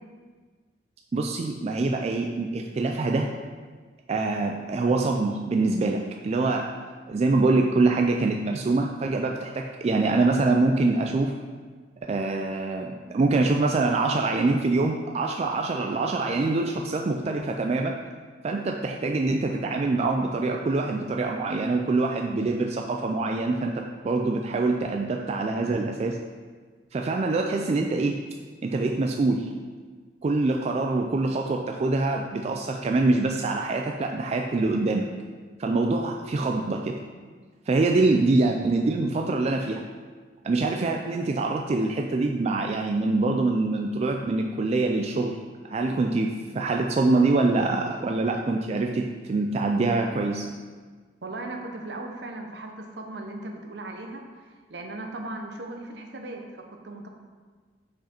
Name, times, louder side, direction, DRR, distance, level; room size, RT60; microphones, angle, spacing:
voice 1, 1.1-3.3 4.1-6.7 7.1-11.3 12.1-17.9 18.4-26.2 26.9-28.1 28.6-29.5 30.2-35.1 35.6-37.0 37.7-39.8 40.4-45.4 45.7-50.5, right 3 dB, 35° right, 2 dB, 0.3 m, -25 dB
voice 2, 51.2-54.3 54.7-56.4 56.7-57.1, right 2 dB, 70° right, 3 dB, 0.8 m, -37 dB
5.9 x 4.9 x 4.3 m, 1.5 s
head